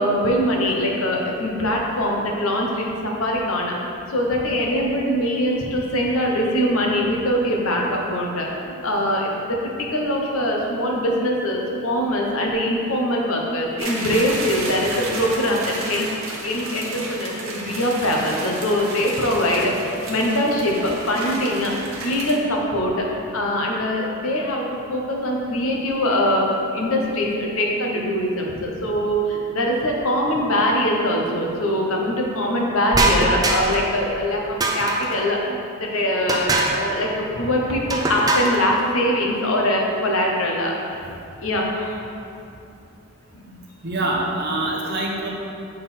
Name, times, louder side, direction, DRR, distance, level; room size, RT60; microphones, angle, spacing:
voice 1, 0.0-3.7 4.1-16.1 16.4-23.1 23.3-41.1 41.4-42.0 43.4-43.6, equal, 75° left, -1 dB, 1.0 m, -23 dB
sound 1, 13.8-22.3, right 2 dB, 70° right, 1.0 m, -32 dB
sound 2, 32.9-33.9 34.6-35.2 36.3-36.9 37.9-38.6, right 2 dB, 15° right, 0.4 m, -22 dB
voice 2, 43.8-45.3, right 2 dB, 50° right, -2 dB, 0.9 m, -24 dB
7.6 x 3.9 x 4.3 m, 2.6 s
head